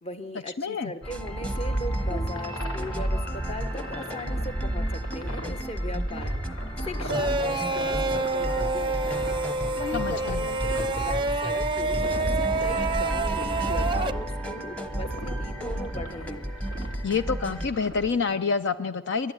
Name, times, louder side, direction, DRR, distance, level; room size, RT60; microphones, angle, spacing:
voice 1, 0.0-16.5, left 1 dB, 30° left, 9 dB, 1.2 m, -39 dB
voice 2, 0.6-0.9 9.9-10.4 17.0-19.3, left 5 dB, 60° left, 12 dB, 0.6 m, -27 dB
sound 1, 1.0-18.1, right 1 dB, 75° left, 3.2 m, -34 dB
sound 2, 1.0-17.7, right 1 dB, 5° left, 1.2 m, -34 dB
sound 3, 7.1-14.1, right 3 dB, 25° right, 0.7 m, -28 dB
28.5 x 12.0 x 9.9 m, 1.2 s
head